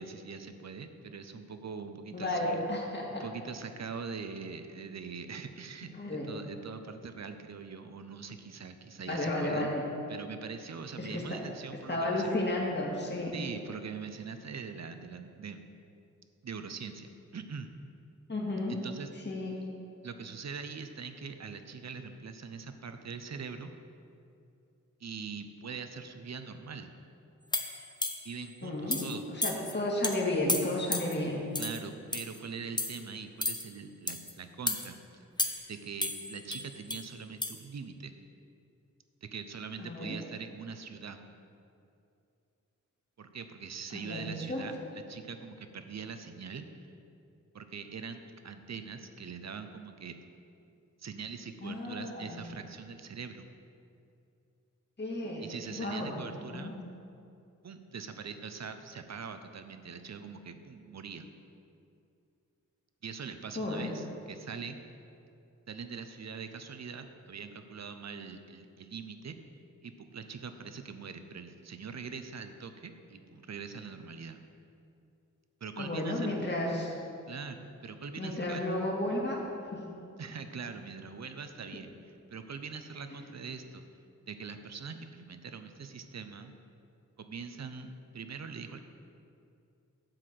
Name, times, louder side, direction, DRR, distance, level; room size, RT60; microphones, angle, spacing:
voice 1, 0.0-2.7 3.1-9.7 10.1-12.3 13.3-15.6 16.4-17.8 18.7-19.1 20.0-23.7 25.0-26.9 28.2-29.2 31.6-35.3 35.7-38.1 39.2-41.2 43.2-46.6 47.5-50.1 51.0-53.5 55.4-56.7 57.6-61.3 63.0-64.8 65.7-69.4 69.8-74.4 75.6-76.6 77.3-78.6 80.2-83.8 84.3-86.5 87.2-88.8, right 5 dB, 55° right, 8 dB, 0.8 m, -43 dB
voice 2, 2.1-3.3 5.9-6.3 9.1-9.8 11.0-11.4 11.9-13.3 18.3-18.8 19.3-19.5 28.6-31.5 39.8-40.2 43.9-44.7 51.6-52.5 55.0-55.4 55.7-56.1 56.5-56.7 63.6-63.9 75.8-77.0 78.2-79.4 79.7-79.8, left 1 dB, 35° left, -3 dB, 2.2 m, -33 dB
sound 1, 27.5-28.4 28.9-29.1 29.4-29.7 30.0-30.2 30.5-31.1 31.6-31.8 32.1-32.4 32.8-33.0 33.4-33.6 34.1-34.3 34.7-34.9 35.4-35.7 36.0-37.0 37.4-37.5, left 2 dB, 15° left, 0.9 m, -33 dB
11.5 x 4.9 x 7.7 m, 2.6 s
wide cardioid pair, 80°, 31 cm